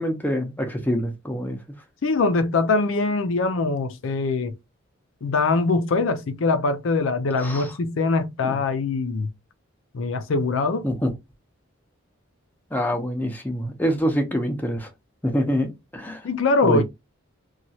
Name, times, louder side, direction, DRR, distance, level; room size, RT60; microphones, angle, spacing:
voice 1, 0.0-1.6 7.4-7.7 8.4-8.6 10.8-11.1 12.7-14.9 15.2-16.2 16.6-16.8, equal, 10° left, 0.6 m, -25 dB
voice 2, 2.0-4.5 5.2-9.3 9.9-10.8 16.2-16.8, left 3 dB, 70° left, 0.5 m, -22 dB
2.9 x 2.3 x 2.7 m
head